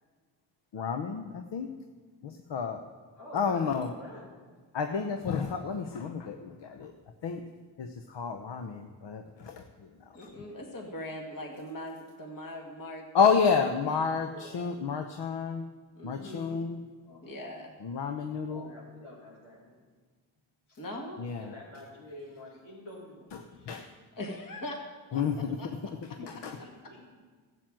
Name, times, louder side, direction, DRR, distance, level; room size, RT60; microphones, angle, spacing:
voice 1, 0.7-1.7 2.2-2.8 3.3-3.9 4.7-6.9 7.2-7.4 7.8-9.6 10.2-10.3 13.1-15.6 16.0-16.8 17.8-18.7 21.2-21.5 23.3-23.9 25.1-25.6 26.4-26.5, left 6 dB, 60° left, 6 dB, 0.9 m, -30 dB
voice 2, 3.2-4.3 14.3-14.5 17.0-17.3 18.4-19.8 20.7-20.8 21.3-23.2 23.5-23.8 26.2-26.3 26.6-27.0, left 1 dB, 85° left, -6 dB, 4.6 m, -48 dB
voice 3, 10.1-13.1 16.0-16.6 17.2-17.7 20.8-21.2 24.2-24.8 25.1-26.2, left 1 dB, 45° left, 1 dB, 2.1 m, -41 dB
12.5 x 7.8 x 7.7 m, 1.5 s
supercardioid pair, 50°, 48 cm